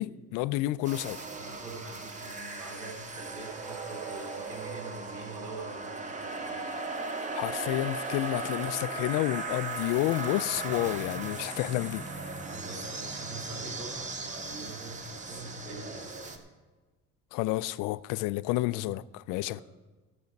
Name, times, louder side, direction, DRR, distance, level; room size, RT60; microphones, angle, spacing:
voice 1, 0.0-1.2 7.3-12.0 17.3-19.6, left 17 dB, 80° left, 0.5 m, -30 dB
sound 1, 0.8-16.4, right 3 dB, 25° right, 1.1 m, -38 dB
sound 2, 0.9-16.3, right 3 dB, 40° right, 1.6 m, -51 dB
voice 2, 1.4-6.7 12.5-16.4 19.5-19.6, right 2 dB, 75° right, 4.2 m, -44 dB
16.0 x 7.0 x 5.2 m
cardioid pair, 135°, 32 cm